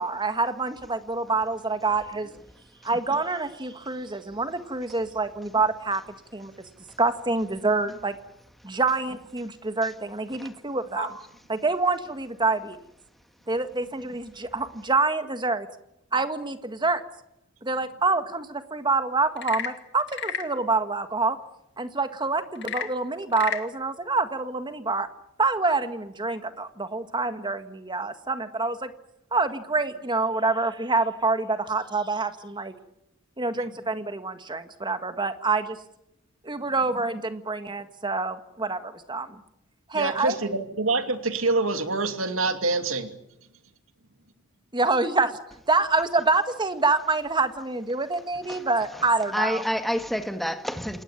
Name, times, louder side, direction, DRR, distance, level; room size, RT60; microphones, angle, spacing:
voice 1, 0.0-2.3 2.8-6.0 6.3-6.5 7.0-8.2 8.6-11.1 11.5-12.8 13.5-15.7 16.1-17.0 17.6-21.4 21.8-25.1 25.4-28.9 29.3-32.7 33.4-35.8 36.4-39.4 39.9-40.4 44.7-45.4 45.7-49.6, right 3 dB, 25° right, 1.8 m, -26 dB
voice 2, 1.9-2.5 2.8-2.9 4.9-5.0 5.9-6.0 6.9-7.0 8.9-9.0 9.8-9.9 10.3-10.5 46.0-46.1 48.4-51.0, equal, ahead, 2.0 m, -31 dB
Frog / Percussion / Wood, 19.3-20.6 22.5-23.7, left 8 dB, 60° left, 2.2 m, -32 dB
voice 3, 39.9-43.1, right 3 dB, 85° right, 2.7 m, -26 dB
28.0 x 20.0 x 8.9 m
head